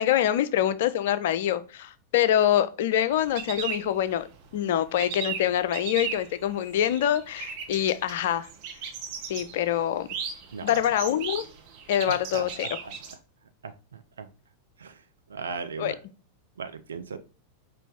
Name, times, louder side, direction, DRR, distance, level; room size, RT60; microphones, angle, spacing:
voice 1, 0.0-4.3 4.5-8.5 9.3-10.1 10.6-11.5 11.9-12.8 15.8-15.9, left 11 dB, 55° left, 0.4 m, -25 dB
sound 1, 3.1-4.5 4.8-13.1, right 7 dB, 45° right, 0.9 m, -37 dB
voice 2, 12.1-12.4 13.6-13.7 14.2-14.3 14.8-14.9 15.3-15.9 16.6-17.2, right 5 dB, 70° right, 0.4 m, -36 dB
5.0 x 2.7 x 3.4 m
figure-of-eight pair, 90°, 0 cm